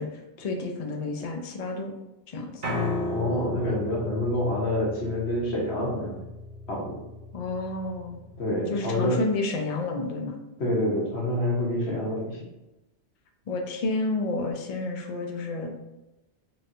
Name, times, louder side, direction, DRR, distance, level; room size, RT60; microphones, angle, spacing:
voice 1, 0.0-1.9 2.3-2.6 7.3-8.2 8.7-10.4 13.5-15.8, left 3 dB, 50° left, 3 dB, 0.4 m, -30 dB
Piano, 2.6-8.8, left 2 dB, 40° right, 0.8 m, -34 dB
voice 2, 3.1-6.2 6.7-7.0 8.4-9.2 10.6-12.4, left 1 dB, 65° left, -3 dB, 1.4 m, -27 dB
4.4 x 3.2 x 2.6 m, 0.96 s
omnidirectional pair, 1.2 m